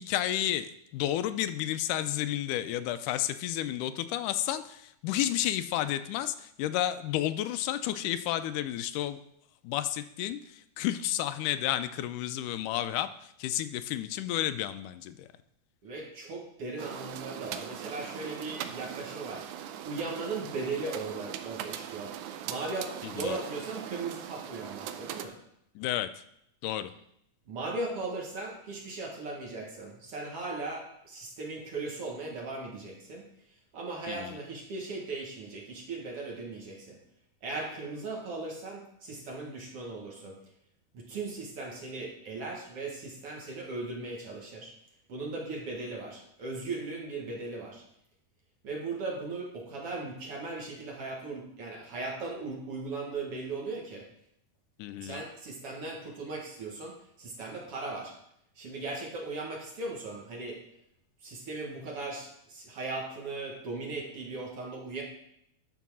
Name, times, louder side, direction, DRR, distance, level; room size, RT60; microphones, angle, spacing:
voice 1, 0.0-9.2 9.6-15.3 23.0-23.3 25.8-26.1 26.6-26.9 34.1-34.4 54.8-55.2, left 12 dB, 85° left, 11 dB, 2.1 m, -31 dB
voice 2, 15.8-19.5 19.8-22.2 22.5-25.4 27.5-37.0 37.4-40.4 40.9-44.7 45.1-47.8 48.6-54.1 55.0-58.1 58.6-60.6 61.2-65.0, right 3 dB, 50° right, -1 dB, 2.4 m, -38 dB
sound 1, 16.8-25.3, right 10 dB, 80° right, 2.0 m, -40 dB
11.0 x 4.7 x 6.1 m, 0.74 s
omnidirectional pair, 3.6 m